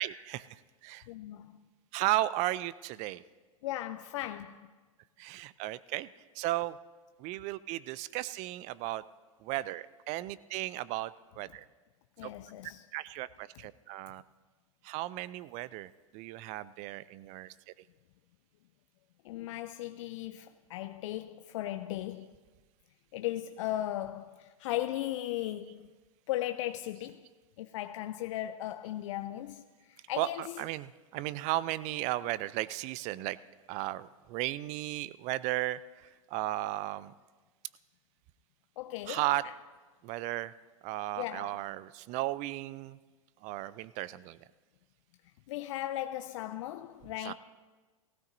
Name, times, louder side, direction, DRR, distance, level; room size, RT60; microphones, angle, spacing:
voice 1, 0.0-1.0 1.9-3.2 5.2-6.1 6.3-6.8 7.2-9.0 9.4-11.6 12.2-12.3 12.9-14.2 14.8-17.5 30.2-33.4 33.7-37.1 39.1-39.4 40.0-40.5 40.8-43.0 43.4-44.4 47.2-47.3, right 16 dB, 40° right, 0.5 m, -35 dB
voice 2, 1.1-1.6 3.6-4.7 12.2-12.8 19.2-22.3 23.1-25.9 26.3-27.2 27.6-29.7 30.1-30.6 38.8-39.2 41.2-41.6 45.5-47.3, left 14 dB, 60° left, 0.5 m, -37 dB
18.0 x 16.0 x 2.7 m
hypercardioid pair, 100°, 18 cm